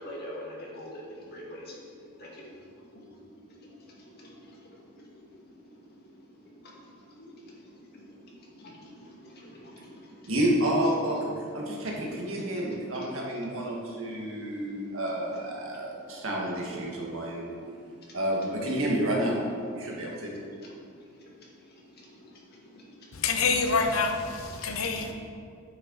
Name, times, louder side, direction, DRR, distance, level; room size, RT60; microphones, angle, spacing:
voice 1, 0.0-10.3 10.8-16.3 16.8-18.7 19.8-23.2 24.5-25.1, left 1 dB, 50° left, -4 dB, 1.9 m, -48 dB
voice 2, 10.3-11.2 11.5-17.6 18.1-19.4 19.7-20.3, right 1 dB, 70° right, -2 dB, 1.7 m, -29 dB
voice 3, 23.1-25.1, left 4 dB, 80° left, 4 dB, 0.8 m, -27 dB
9.1 x 6.4 x 4.0 m, 2.4 s
head